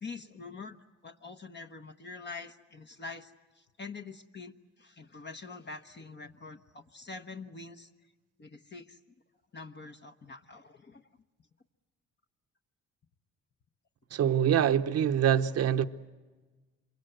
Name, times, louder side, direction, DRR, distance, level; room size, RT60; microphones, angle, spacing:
voice 1, 0.0-0.8 1.0-7.9 8.4-9.0 9.5-11.0, left 4 dB, 35° left, 1.1 m, -45 dB
voice 2, 14.1-15.9, right 9 dB, 55° right, 0.9 m, -25 dB
27.0 x 23.5 x 8.0 m
cardioid pair, 90°, 30 cm